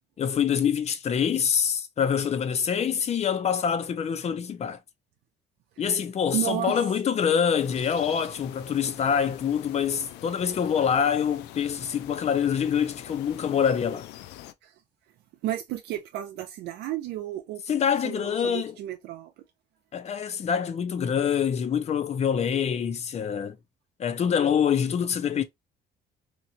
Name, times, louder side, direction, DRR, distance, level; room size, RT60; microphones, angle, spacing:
voice 1, 0.2-4.8 5.8-14.1 17.7-18.7 19.9-23.6 24.0-25.4, left 7 dB, 40° left, 0.6 m, -25 dB
voice 2, 6.3-6.8 14.6-14.7 15.4-17.6 18.0-19.3, right 13 dB, 80° right, 0.5 m, -32 dB
sound 1, 7.6-14.5, left 14 dB, 90° left, 0.4 m, -45 dB
3.0 x 2.5 x 2.7 m
cardioid pair, 110°, 17 cm